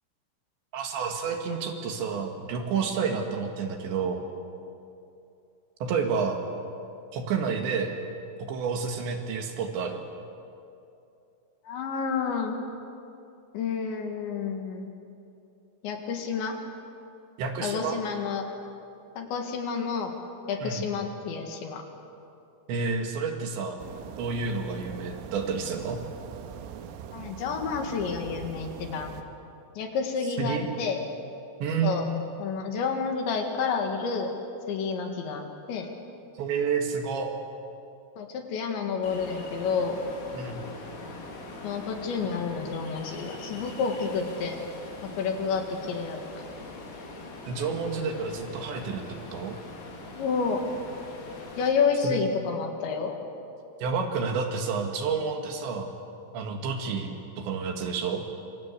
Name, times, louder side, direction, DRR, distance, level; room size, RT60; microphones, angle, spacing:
voice 1, 0.7-4.2 5.8-6.4 7.1-8.0 8.4-10.0 17.4-18.0 20.6-20.9 22.7-23.8 24.2-26.0 30.4-30.7 31.6-32.0 36.4-37.3 40.3-40.7 47.5-49.6 52.0-52.2 53.8-55.9 56.3-58.2, right 5 dB, 65° right, 4 dB, 3.7 m, -30 dB
voice 2, 11.7-12.6 13.5-14.9 15.8-16.6 17.6-18.5 19.2-20.1 20.5-21.8 27.1-29.1 29.8-31.0 31.8-32.1 32.4-34.3 34.7-35.9 38.2-40.0 41.6-44.6 45.0-46.4 50.2-50.6 51.6-53.2, left 5 dB, 65° left, 3 dB, 4.0 m, -29 dB
sound 1, 23.8-29.2, right 8 dB, 80° right, 3.9 m, -42 dB
Ocean, 39.0-51.7, left 2 dB, 80° left, 6.3 m, -42 dB
27.0 x 25.0 x 8.3 m, 2.7 s
omnidirectional pair, 6.0 m